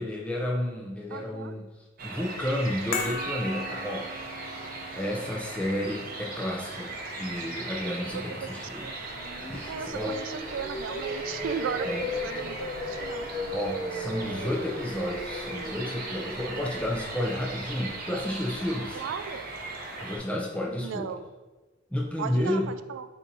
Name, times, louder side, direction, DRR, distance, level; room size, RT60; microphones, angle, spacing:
voice 1, 0.0-1.7 2.0-4.3 5.0-8.9 9.5-10.2 11.8-12.0 13.5-19.0 20.0-21.2 21.9-22.8, left 1 dB, 5° left, -2 dB, 0.6 m, -31 dB
voice 2, 1.1-1.5 8.1-8.5 8.8-8.9 9.7-13.3 18.9-19.4 20.8-21.2 22.2-23.0, right 7 dB, 75° right, 10 dB, 0.3 m, -36 dB
sound 1, 2.0-20.2, right 2 dB, 50° right, 0.7 m, -38 dB
sound 2, 2.9-9.3 9.6-9.7, left 3 dB, 50° left, 0.5 m, -40 dB
sound 3, 8.8-18.9, left 1 dB, 80° left, 0.9 m, -37 dB
6.7 x 2.9 x 2.7 m, 1.2 s
head